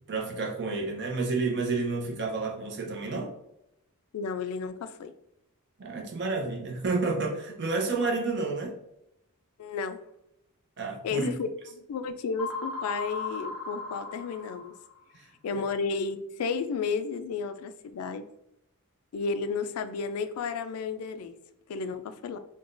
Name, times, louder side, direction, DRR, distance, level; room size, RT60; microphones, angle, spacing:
voice 1, 0.1-3.3 5.8-8.7 10.8-11.3 15.5-15.6, right 3 dB, 50° right, 2 dB, 0.6 m, -30 dB
voice 2, 4.1-5.1 9.6-10.0 11.0-14.7 15.4-18.2 19.1-21.3 21.7-22.4, left 5 dB, 75° left, 10 dB, 0.3 m, -32 dB
sound 1, 12.4-15.0, left 3 dB, 10° right, 0.7 m, -36 dB
3.7 x 2.3 x 2.4 m, 0.82 s
head